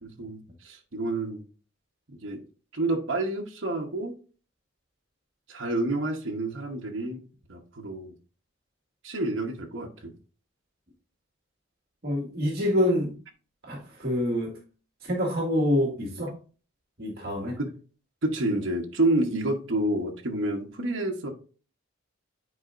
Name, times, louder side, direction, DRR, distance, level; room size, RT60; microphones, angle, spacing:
voice 1, 0.0-1.4 2.1-2.4 2.7-4.2 5.5-7.2 7.5-8.1 9.0-10.1 17.6-17.7 18.2-21.3, right 2 dB, 65° right, 1.0 m, -29 dB
voice 2, 12.0-13.1 13.6-14.6 15.0-16.4 17.0-17.6, left 1 dB, 50° right, 1.8 m, -26 dB
9.7 x 4.7 x 2.5 m
head